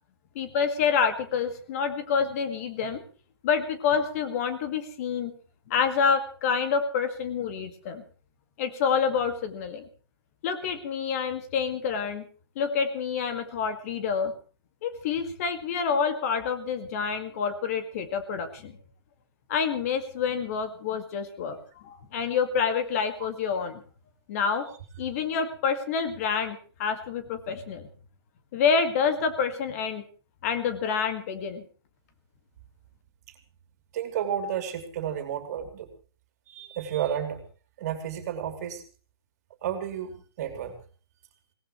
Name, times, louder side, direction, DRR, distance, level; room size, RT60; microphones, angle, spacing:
voice 1, 0.4-3.0 3.4-5.3 5.7-8.0 8.6-9.8 10.4-12.3 12.6-14.3 14.8-18.7 19.5-21.6 21.8-23.8 24.3-24.7 25.0-27.9 28.5-30.0 30.4-31.6, left 6 dB, 35° left, 8 dB, 2.0 m, -27 dB
voice 2, 33.9-35.9 36.5-37.4 37.8-38.8 39.6-40.7, right 9 dB, 40° right, 6 dB, 3.1 m, -31 dB
22.5 x 18.0 x 3.2 m, 0.39 s
hypercardioid pair, 145°, 13 cm